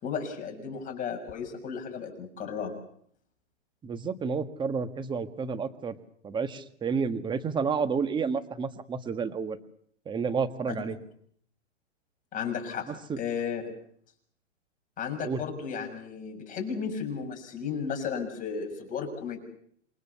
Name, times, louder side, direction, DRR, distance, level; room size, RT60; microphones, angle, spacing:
voice 1, 0.0-2.8 10.9-11.0 12.3-12.9 13.2-13.7 15.0-19.4, left 6 dB, 20° left, 4 dB, 6.6 m, -34 dB
voice 2, 3.8-6.0 6.2-9.6 10.0-11.0 12.9-13.2 15.2-15.4, right 5 dB, 10° right, 11 dB, 1.5 m, -30 dB
28.0 x 23.5 x 7.0 m, 0.63 s
hypercardioid pair, 135°, 37 cm